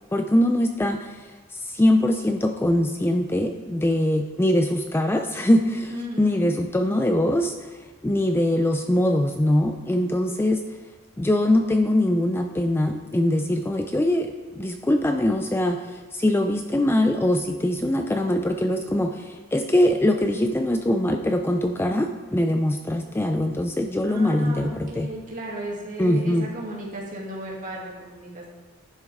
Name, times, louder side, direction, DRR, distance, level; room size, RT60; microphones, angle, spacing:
voice 1, 0.1-1.2 1.5-5.9 6.2-7.7 8.0-10.6 11.2-25.1 26.0-26.5, left 1 dB, 10° left, 5 dB, 0.4 m, -22 dB
voice 2, 5.9-6.5 24.1-28.5, right 1 dB, 40° right, -4 dB, 2.5 m, -35 dB
10.5 x 9.9 x 3.6 m, 1.3 s
head